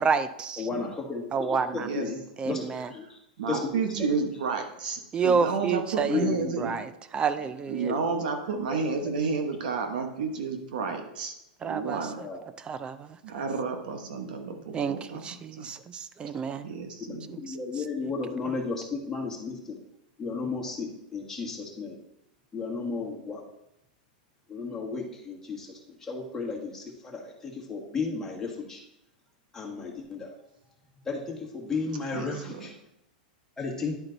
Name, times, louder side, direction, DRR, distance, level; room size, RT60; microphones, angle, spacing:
voice 1, 0.0-0.7 1.3-1.9 2.4-2.9 5.1-7.9 11.6-12.3 12.6-13.2 14.7-16.7 17.3-17.9 18.5-18.6, right 5 dB, 20° right, 13 dB, 0.5 m, -30 dB
voice 2, 0.6-1.3 1.9-2.2 2.5-3.2 3.5-3.9 6.1-6.6 7.8-8.0 12.2-12.4 17.1-19.8 20.2-22.0 22.5-23.4 24.5-28.8 29.5-30.3 31.1-32.7 33.6-34.0, left 4 dB, 10° left, -2 dB, 1.7 m, -34 dB
voice 3, 1.7-2.1 2.4-2.6 3.0-3.1 3.4-6.7 7.7-12.3 13.2-15.7 16.6-17.4 32.1-32.8, right 5 dB, 70° right, 5 dB, 1.3 m, -31 dB
10.5 x 4.3 x 4.0 m, 0.84 s
hypercardioid pair, 135°, 5 cm